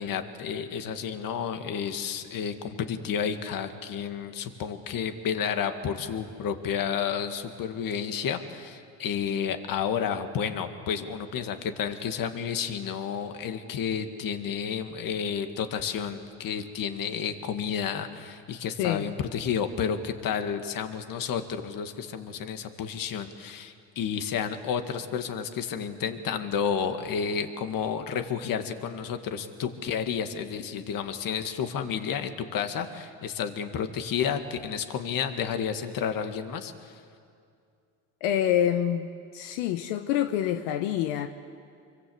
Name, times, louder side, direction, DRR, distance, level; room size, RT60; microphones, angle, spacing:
voice 1, 0.0-36.9, left 7 dB, 60° left, 7 dB, 2.1 m, -31 dB
voice 2, 18.8-19.1 38.2-39.1 39.3-41.3, left 11 dB, 85° left, 8 dB, 1.1 m, -26 dB
26.0 x 23.5 x 8.2 m, 2.4 s
supercardioid pair, 90°, 39 cm